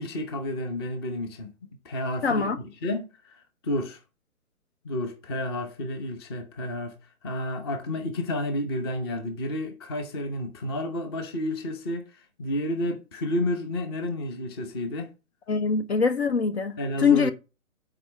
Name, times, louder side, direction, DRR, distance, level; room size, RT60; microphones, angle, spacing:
voice 1, 0.0-1.5 1.8-2.5 2.8-4.0 4.8-6.9 7.2-12.1 12.4-15.1 16.8-17.3, left 1 dB, 15° left, 0.8 m, -31 dB
voice 2, 2.2-2.6 15.5-17.3, left 5 dB, 45° left, 0.8 m, -23 dB
7.9 x 4.9 x 4.3 m
hypercardioid pair, 150°, 44 cm